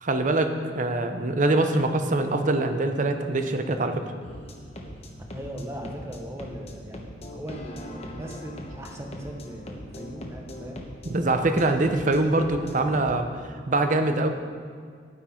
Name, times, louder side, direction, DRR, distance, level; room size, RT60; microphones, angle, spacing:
voice 1, 0.0-4.0 11.0-13.3 13.7-14.3, right 2 dB, 45° right, 7 dB, 0.8 m, -23 dB
sound 1, 4.2-13.2, equal, 35° left, 1.1 m, -41 dB
voice 2, 5.3-10.8, equal, 15° right, 1 dB, 1.2 m, -38 dB
9.8 x 9.6 x 4.4 m, 2.1 s
head